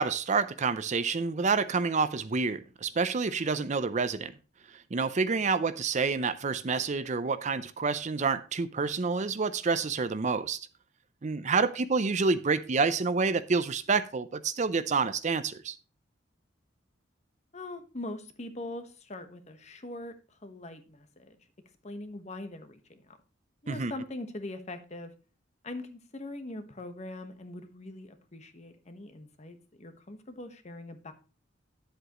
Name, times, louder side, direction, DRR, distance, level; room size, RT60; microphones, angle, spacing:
voice 1, 0.0-4.3 4.9-10.6 11.2-15.8 23.7-23.9, right 4 dB, 40° right, 0.5 m, -28 dB
voice 2, 17.5-21.4 21.8-23.2 23.6-25.1 25.6-31.1, left 2 dB, 35° left, 1.2 m, -42 dB
10.0 x 7.9 x 3.0 m
head